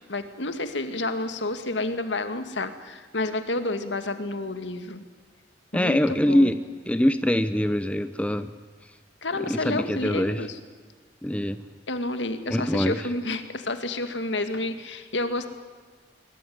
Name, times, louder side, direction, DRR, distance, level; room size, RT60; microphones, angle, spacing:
voice 1, 0.1-5.1 5.7-6.5 9.2-10.6 11.9-15.5, left 2 dB, 70° left, 9 dB, 2.1 m, -30 dB
voice 2, 5.7-6.6 6.9-8.5 9.4-10.4 11.2-11.6 12.5-13.0, equal, 5° left, 11 dB, 0.8 m, -23 dB
22.0 x 21.0 x 9.5 m, 1.4 s
head